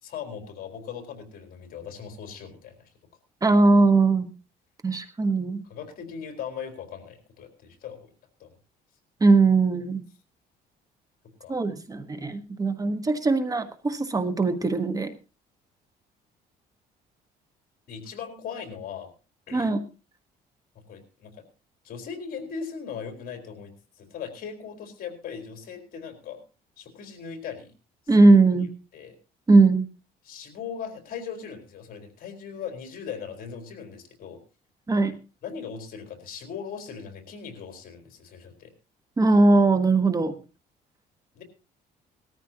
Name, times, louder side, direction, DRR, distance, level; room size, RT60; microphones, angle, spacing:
voice 1, 0.0-2.9 5.7-8.1 8.4-8.6 11.4-11.6 17.9-19.1 19.5-19.7 20.7-21.4 21.8-26.4 26.8-27.7 28.0-28.3 28.9-29.2 30.2-34.4 35.4-38.7 41.3-41.4, left 7 dB, 60° left, 5 dB, 4.1 m, -39 dB
voice 2, 3.4-4.3 4.8-5.6 9.2-10.0 11.5-15.1 19.5-19.8 28.1-28.7 29.5-29.9 34.9-35.1 39.2-40.3, right 3 dB, 20° right, 9 dB, 1.3 m, -20 dB
19.5 x 14.0 x 2.9 m, 0.32 s
cardioid pair, 110°, 17 cm